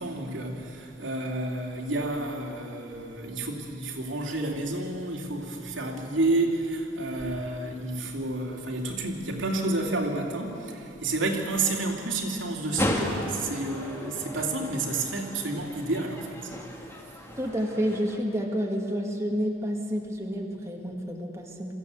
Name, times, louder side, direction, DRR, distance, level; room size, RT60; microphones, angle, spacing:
voice 1, 0.0-16.5, right 2 dB, 90° right, -1 dB, 2.9 m, -30 dB
sound 1, 12.8-18.2, left 1 dB, 15° left, 1.9 m, -34 dB
voice 2, 17.4-21.7, equal, 15° right, 0 dB, 1.7 m, -29 dB
23.5 x 14.5 x 8.2 m, 3.0 s
head